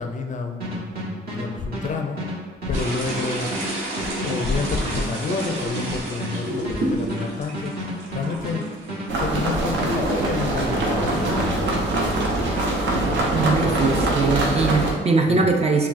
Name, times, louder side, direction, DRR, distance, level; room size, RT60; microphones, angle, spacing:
voice 1, 0.0-2.3 2.7-3.6 4.0-7.7 8.1-8.7 9.1-14.0 15.3-15.5, left 4 dB, 40° left, 4 dB, 0.4 m, -30 dB
sound 1, 0.6-13.6 13.8-14.9, equal, 50° right, 1.2 m, -31 dB
sound 2, 2.7-14.8, right 1 dB, 90° right, 1.1 m, -33 dB
sound 3, 9.1-14.9, right 2 dB, 70° right, 0.7 m, -23 dB
voice 2, 13.3-15.9, right 3 dB, 35° right, 2 dB, 0.4 m, -21 dB
5.8 x 2.2 x 2.5 m, 1.4 s
cardioid pair, 95°, 20 cm